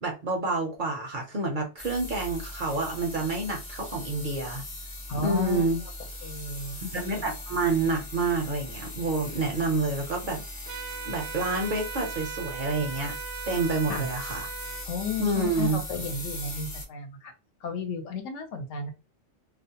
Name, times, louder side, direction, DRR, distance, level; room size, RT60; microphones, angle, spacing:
voice 1, 0.0-4.6 5.2-5.8 6.8-10.8 11.0-13.1 13.5-14.5 15.2-15.8, right 3 dB, 55° right, 0.6 m, -28 dB
sound 1, 1.8-16.9, left 1 dB, 35° left, 0.6 m, -40 dB
voice 2, 5.1-5.6 6.2-6.8 13.9-14.1 14.9-17.3 17.6-18.9, left 4 dB, 75° left, 0.9 m, -33 dB
sound 2, 10.7-14.9, right 8 dB, 75° right, 0.9 m, -39 dB
2.4 x 2.0 x 2.7 m
omnidirectional pair, 1.3 m